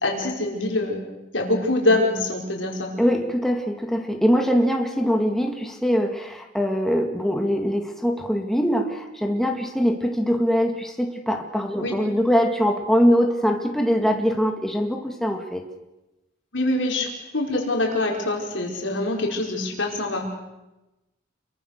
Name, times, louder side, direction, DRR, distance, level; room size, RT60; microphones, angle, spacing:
voice 1, 0.0-1.0 1.3-2.9 11.8-11.9 16.5-20.3, left 2 dB, 70° left, 0 dB, 5.1 m, -24 dB
voice 2, 3.0-15.6, equal, ahead, 2 dB, 2.0 m, -22 dB
28.5 x 23.5 x 6.6 m, 0.98 s
head